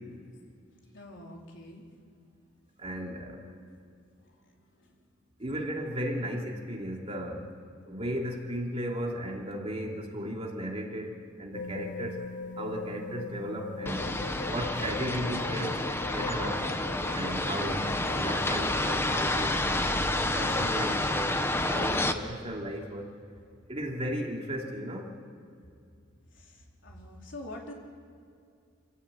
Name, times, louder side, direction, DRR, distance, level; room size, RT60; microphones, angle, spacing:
voice 1, 0.9-1.8 4.2-4.9 23.6-23.7 26.3-27.7, left 1 dB, 60° left, 0 dB, 4.4 m, -46 dB
voice 2, 2.8-3.4 5.4-7.4 7.9-11.1 11.4-12.2 12.6-14.0 14.5-15.8 16.1-16.6 17.1-19.6 20.2-21.3 21.7-23.1 23.7-25.1, equal, 30° right, 0 dB, 3.2 m, -35 dB
sound 1, 11.5-20.2, left 3 dB, 40° left, 0.9 m, -42 dB
sound 2, 13.9-22.1, left 1 dB, 10° left, 1.1 m, -29 dB
28.5 x 15.0 x 9.1 m, 2.4 s
head